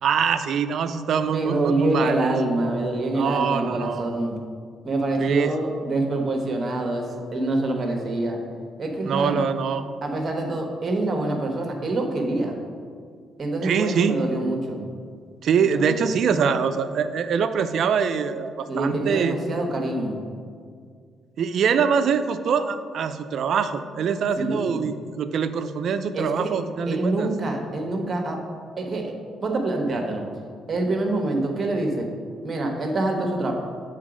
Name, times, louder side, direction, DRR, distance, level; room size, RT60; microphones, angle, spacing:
voice 1, 0.0-2.4 3.1-4.1 5.2-5.5 9.0-9.9 13.6-14.2 15.4-19.4 21.4-27.3, right 6 dB, 65° right, 10 dB, 0.4 m, -24 dB
voice 2, 1.3-4.4 4.8-7.1 7.3-8.4 8.8-9.4 10.0-12.6 13.4-14.8 15.7-16.1 18.7-20.2 24.4-24.8 26.1-26.5 26.9-28.4 28.8-29.0 29.4-30.2 30.7-32.1 32.4-33.5, right 2 dB, 40° right, 2 dB, 1.2 m, -25 dB
7.3 x 4.0 x 5.0 m, 2.1 s
cardioid pair, 90°, 0 cm